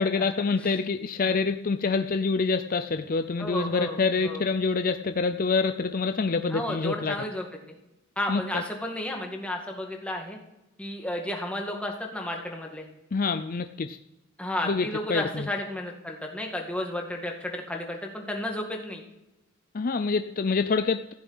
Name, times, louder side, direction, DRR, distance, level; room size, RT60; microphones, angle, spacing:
voice 1, 0.0-7.1 8.3-8.6 13.1-14.0 14.6-15.5 19.7-21.1, left 4 dB, 45° left, 9 dB, 0.5 m, -26 dB
voice 2, 3.4-4.4 6.5-7.5 8.2-10.4 10.8-12.9 14.4-19.0, left 1 dB, 5° left, 1 dB, 2.0 m, -32 dB
15.5 x 7.1 x 8.7 m, 0.94 s
head